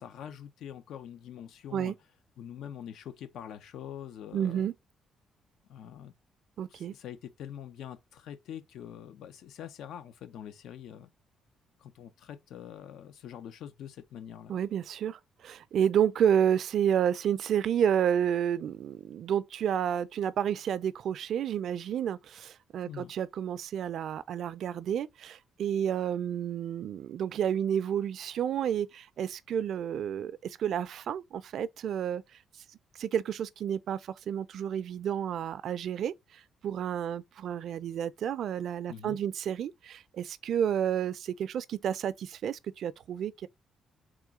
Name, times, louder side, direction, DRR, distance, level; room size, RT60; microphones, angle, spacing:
voice 1, 0.0-1.9 2.4-4.7 5.7-6.1 6.7-11.1 11.8-14.6 22.8-23.1 38.9-39.2, left 9 dB, 80° left, 0.7 m, -44 dB
voice 2, 4.3-4.7 6.6-6.9 14.5-32.2 33.0-43.5, right 9 dB, 70° right, 0.4 m, -30 dB
3.7 x 3.0 x 4.7 m
cardioid pair, 90°, 0 cm